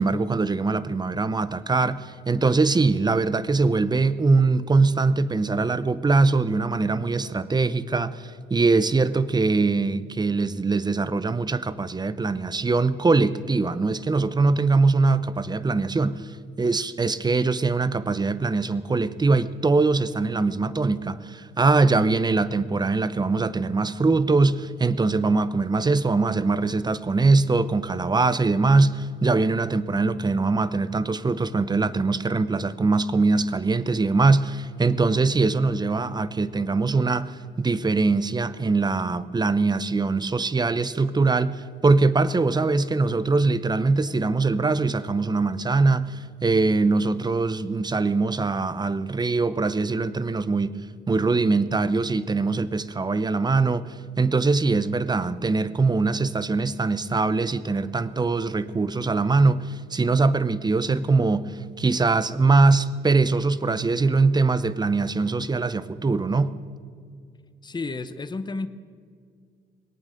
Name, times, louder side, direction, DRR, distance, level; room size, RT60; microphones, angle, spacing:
voice 1, 0.0-50.8 51.1-53.9 54.2-66.5, right 3 dB, 20° right, 14 dB, 0.7 m, -22 dB
voice 2, 67.6-68.7, left 3 dB, 20° left, 12 dB, 0.8 m, -31 dB
20.5 x 8.8 x 6.6 m, 2.2 s
cardioid pair, 90°, 20 cm